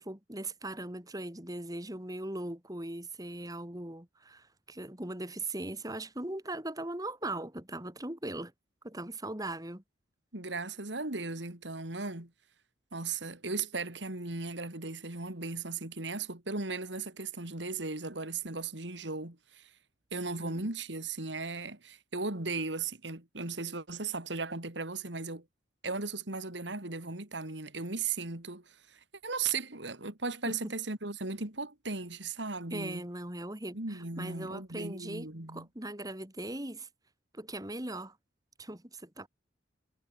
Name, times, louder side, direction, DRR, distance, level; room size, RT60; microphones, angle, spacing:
voice 1, 0.0-8.5 8.8-9.8 20.4-20.7 30.5-30.7 32.7-36.9 37.3-38.2 38.6-39.3, right 1 dB, 20° right, 2.8 m, -39 dB
voice 2, 10.3-12.3 12.9-19.7 20.1-25.4 25.8-33.0 33.7-35.7, right 4 dB, 75° right, 3.1 m, -37 dB
head